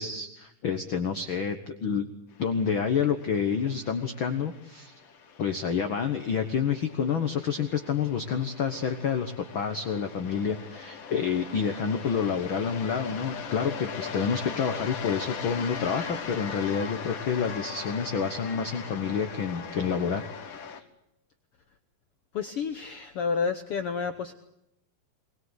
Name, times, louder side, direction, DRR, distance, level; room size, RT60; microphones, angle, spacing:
voice 1, 0.0-2.0 2.4-4.9 5.4-20.2, left 6 dB, 60° left, 7 dB, 1.3 m, -28 dB
sound 1, 2.5-20.8, left 6 dB, 45° left, 1.9 m, -40 dB
voice 2, 22.3-24.3, left 5 dB, 85° left, 9 dB, 1.2 m, -30 dB
22.0 x 21.0 x 8.0 m, 0.81 s
omnidirectional pair, 4.0 m